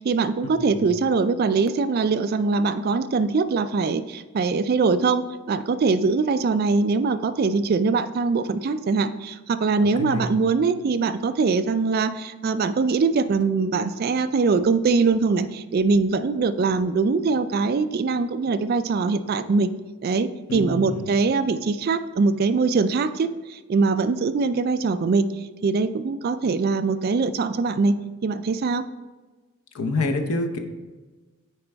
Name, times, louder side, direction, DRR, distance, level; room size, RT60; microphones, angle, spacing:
voice 1, 0.0-19.7 20.0-25.3 25.6-28.9, right 4 dB, 45° right, 11 dB, 0.3 m, -22 dB
voice 2, 20.5-21.1 29.7-30.6, left 2 dB, 80° left, 5 dB, 0.7 m, -27 dB
9.0 x 4.4 x 3.4 m, 1.3 s
head